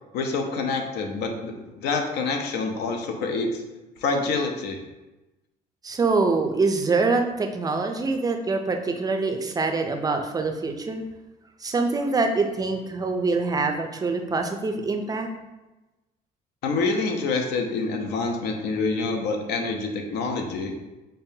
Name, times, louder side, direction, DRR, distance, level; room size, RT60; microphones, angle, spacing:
voice 1, 0.1-3.6 4.0-4.8 16.6-20.7, left 3 dB, 80° left, 4 dB, 0.6 m, -27 dB
voice 2, 5.8-11.0 11.6-15.3, right 3 dB, 20° right, 4 dB, 0.3 m, -25 dB
5.3 x 2.1 x 2.7 m, 1.1 s
cardioid pair, 110°, 17 cm